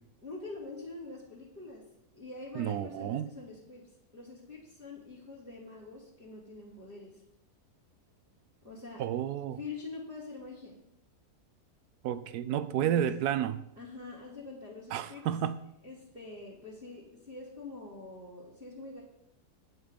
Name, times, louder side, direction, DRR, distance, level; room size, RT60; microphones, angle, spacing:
voice 1, 0.2-1.8 2.1-7.2 8.6-9.0 9.5-10.8 12.8-13.1 13.8-15.3 15.8-19.0, left 3 dB, 10° right, -8 dB, 2.6 m, -45 dB
voice 2, 2.6-3.3 9.0-9.6 12.0-13.6 14.9-15.6, right 10 dB, 80° right, 13 dB, 1.1 m, -31 dB
9.7 x 8.0 x 5.1 m, 0.77 s
omnidirectional pair, 1.7 m